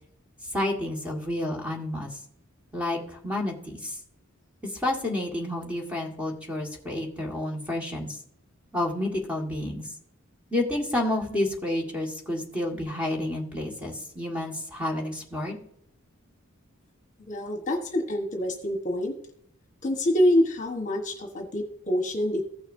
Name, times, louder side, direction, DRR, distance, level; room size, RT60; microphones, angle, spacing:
voice 1, 0.5-2.1 2.7-3.9 4.8-8.2 8.7-9.8 10.5-15.6, left 1 dB, 5° right, -1 dB, 1.7 m, -30 dB
voice 2, 17.3-19.1 19.8-22.4, left 1 dB, 35° left, 4 dB, 1.2 m, -26 dB
15.5 x 6.4 x 2.6 m, 0.71 s
head